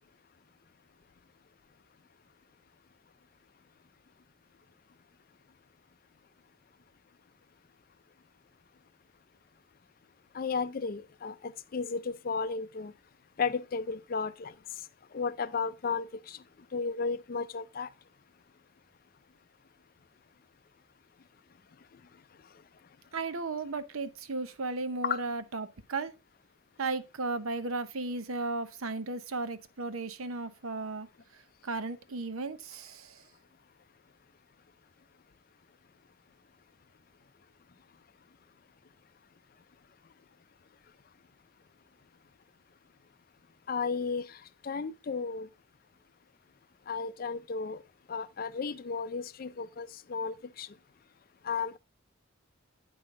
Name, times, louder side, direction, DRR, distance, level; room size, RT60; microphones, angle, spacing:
voice 1, 10.3-12.9 13.4-14.5 15.1-16.4 16.7-17.9 25.0-25.2 43.7-45.5 46.9-47.8 48.1-50.7 51.4-51.8, left 5 dB, 45° left, 0.4 m, -34 dB
voice 2, 23.1-26.1 26.8-31.1 31.3-33.2, right 3 dB, 85° right, 0.8 m, -35 dB
8.7 x 5.6 x 3.7 m
head